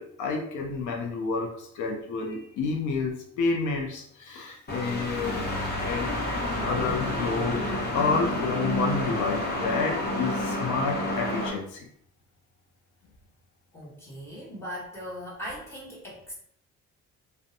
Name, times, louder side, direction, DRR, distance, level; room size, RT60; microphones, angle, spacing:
voice 1, 0.0-7.6 7.9-11.9, left 4 dB, 75° left, 1 dB, 0.5 m, -30 dB
sound 1, 4.7-11.5, left 1 dB, 30° left, 0.9 m, -29 dB
voice 2, 13.7-16.3, equal, 10° left, -7 dB, 1.2 m, -39 dB
2.5 x 2.1 x 2.5 m, 0.68 s
cardioid pair, 90°, 30 cm